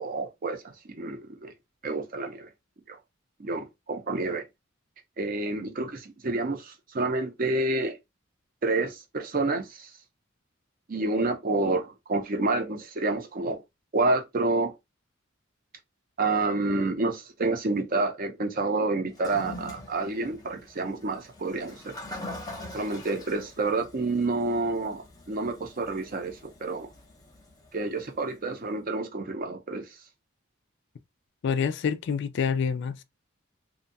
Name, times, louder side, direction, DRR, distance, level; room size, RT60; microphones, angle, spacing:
voice 1, 0.0-1.5 1.8-2.5 2.9-3.0 3.4-4.5 5.2-8.0 8.6-9.9 10.9-13.6 13.9-14.7 16.2-22.0 22.7-26.9 27.7-29.9, right 2 dB, 45° right, 0.5 m, -29 dB
Toilet flush, 19.1-28.4, left 1 dB, 20° left, 0.6 m, -44 dB
voice 2, 31.4-33.0, left 6 dB, 60° left, 0.3 m, -27 dB
2.6 x 2.2 x 2.6 m
head